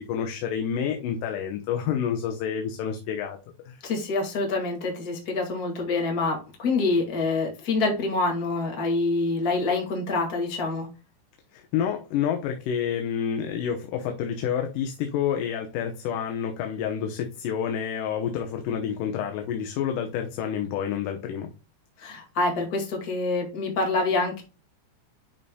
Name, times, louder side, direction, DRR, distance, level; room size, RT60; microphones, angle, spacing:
voice 1, 0.0-3.4 3.7-3.8 11.5-21.5, left 8 dB, 85° left, 4 dB, 2.5 m, -29 dB
voice 2, 3.8-10.9 22.0-24.4, left 3 dB, 30° left, 1 dB, 2.2 m, -26 dB
10.5 x 4.2 x 2.2 m, 0.31 s
omnidirectional pair, 3.7 m